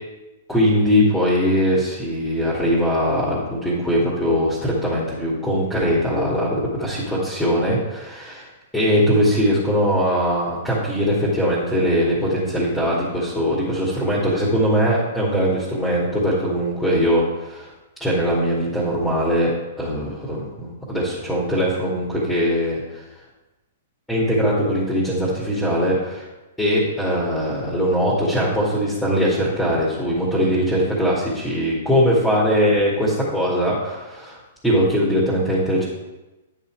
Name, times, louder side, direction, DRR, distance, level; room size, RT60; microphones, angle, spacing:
voice 1, 0.5-8.5 8.7-17.7 18.0-19.5 19.8-23.0 24.1-26.3 26.6-34.4 34.6-35.9, equal, ahead, -7 dB, 2.4 m, -21 dB
10.0 x 5.5 x 4.7 m, 1.1 s
hypercardioid pair, 120°, 0 cm